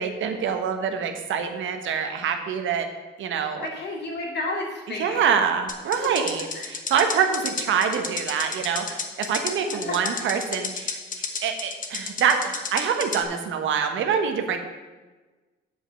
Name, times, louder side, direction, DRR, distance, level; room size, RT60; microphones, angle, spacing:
voice 1, 0.0-2.9 3.2-3.7 5.0-11.0 11.4-14.6, right 7 dB, 75° right, 6 dB, 1.1 m, -25 dB
voice 2, 3.6-5.3 6.5-6.8 9.9-10.0, left 2 dB, 60° left, -1 dB, 2.7 m, -32 dB
sound 1, 5.7-13.2, left 5 dB, 40° left, 1.1 m, -32 dB
8.2 x 5.1 x 6.7 m, 1.3 s
cardioid pair, 90°, 20 cm